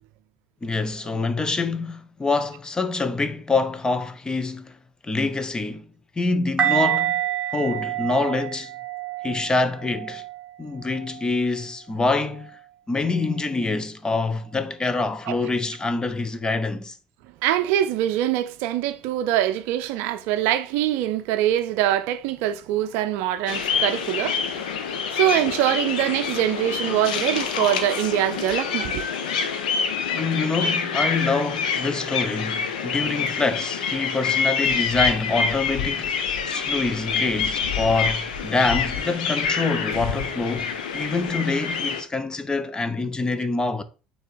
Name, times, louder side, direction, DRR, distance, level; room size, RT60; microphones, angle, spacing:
voice 1, 0.6-4.8 5.0-5.9 6.2-7.2 7.5-8.7 9.2-10.2 10.6-12.5 12.9-17.0 30.1-43.8, left 3 dB, 15° left, 0.8 m, -25 dB
sound 1, 6.6-11.5 12.2-12.4, right 11 dB, 20° right, 1.6 m, -28 dB
voice 2, 17.4-24.7 25.1-29.1, right 12 dB, 55° right, 0.5 m, -24 dB
sound 2, 23.5-42.0, left 6 dB, 70° left, 1.0 m, -26 dB
8.9 x 3.5 x 4.2 m
figure-of-eight pair, 65°, 4 cm